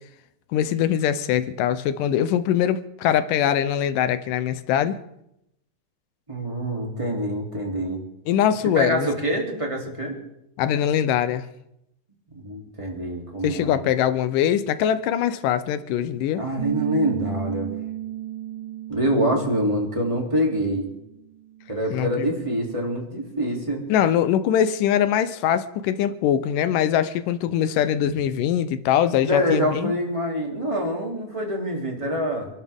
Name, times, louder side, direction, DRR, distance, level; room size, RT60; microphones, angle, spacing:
voice 1, 0.5-5.0 8.3-9.1 10.6-11.4 13.4-16.4 21.9-22.3 23.9-29.9, left 10 dB, 75° left, 12 dB, 2.2 m, -22 dB
voice 2, 6.3-8.0 8.6-10.2 12.3-13.8 16.3-17.7 18.9-20.9 21.7-23.8 28.1-28.2 29.3-32.5, equal, 10° right, 0 dB, 2.5 m, -25 dB
Bass guitar, 16.6-22.8, right 13 dB, 75° right, 2.9 m, -35 dB
27.5 x 12.0 x 3.6 m, 0.82 s
omnidirectional pair, 4.1 m